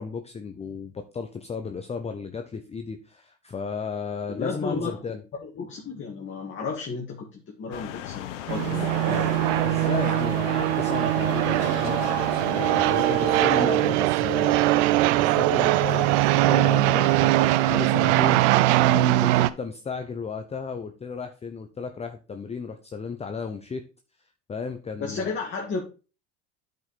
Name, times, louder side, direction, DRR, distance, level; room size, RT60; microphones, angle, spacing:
voice 1, 0.0-5.2 8.7-9.3 9.6-14.7 15.1-18.5 18.8-23.8 24.5-25.4, left 5 dB, 20° left, 7 dB, 0.7 m, -34 dB
voice 2, 4.3-5.0 5.4-9.3 25.0-25.8, left 4 dB, 35° left, 0 dB, 1.9 m, -33 dB
sound 1, 7.7-13.7, left 11 dB, 85° left, 1.1 m, -36 dB
sound 2, 8.5-19.5, right 16 dB, 75° right, 0.6 m, -21 dB
9.1 x 5.3 x 4.1 m, 0.33 s
supercardioid pair, 100°, 35 cm